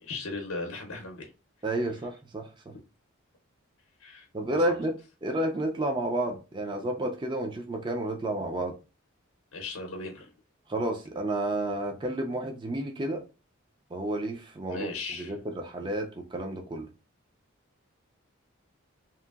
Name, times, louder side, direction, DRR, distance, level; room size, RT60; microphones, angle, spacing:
voice 1, 0.0-1.3 4.0-4.7 9.5-10.3 14.7-15.3, left 3 dB, 85° left, 0.6 m, -37 dB
voice 2, 1.6-2.5 4.3-8.7 10.7-13.2 13.9-16.9, right 1 dB, 20° right, 0.4 m, -31 dB
2.8 x 2.5 x 2.3 m
head